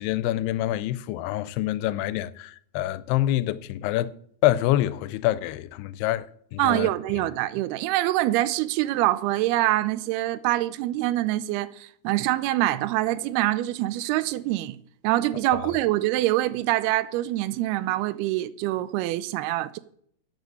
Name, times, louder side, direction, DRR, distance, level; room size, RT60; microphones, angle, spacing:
voice 1, 0.0-4.1 4.4-6.3 6.5-6.9 15.5-15.6, left 14 dB, 90° left, 2.6 m, -26 dB
voice 2, 6.6-19.8, right 16 dB, 85° right, 2.6 m, -25 dB
9.1 x 8.1 x 7.6 m
omnidirectional pair, 4.5 m